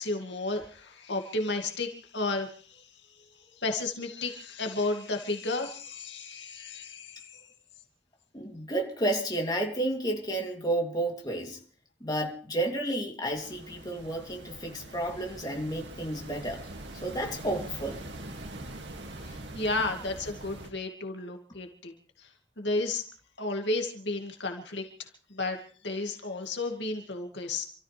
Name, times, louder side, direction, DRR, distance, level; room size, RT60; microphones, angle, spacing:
voice 1, 0.0-7.4 19.2-21.9 22.2-22.3 22.6-23.0 23.4-27.6, left 2 dB, 75° left, 2.3 m, -33 dB
voice 2, 8.3-11.6 12.0-16.6 17.0-18.0, right 1 dB, 20° left, 2.9 m, -31 dB
sound 1, 13.3-20.7, right 1 dB, 75° right, 2.3 m, -43 dB
28.0 x 14.0 x 3.4 m
head